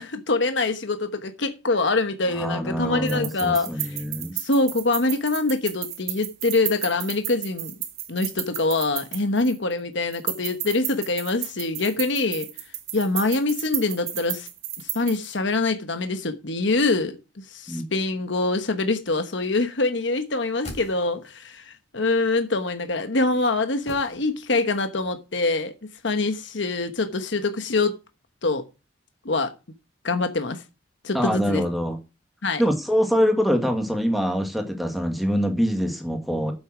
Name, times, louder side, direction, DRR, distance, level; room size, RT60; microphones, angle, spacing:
voice 1, 0.0-4.0 4.4-7.7 8.1-12.5 12.9-14.5 14.8-25.7 26.0-27.9 28.4-28.6 29.2-29.5 30.0-30.6 31.0-31.6 32.4-32.6, left 3 dB, 65° left, 1.1 m, -24 dB
voice 2, 2.3-4.4 17.7-17.8 31.1-32.0 32.6-36.5, equal, ahead, 1.9 m, -24 dB
sound 1, 3.1-9.7 10.1-15.3, right 12 dB, 55° right, 1.9 m, -33 dB
sound 2, 20.3-21.5 23.9-24.8 25.0-25.1, left 1 dB, 35° left, 5.0 m, -42 dB
8.8 x 7.8 x 6.1 m
head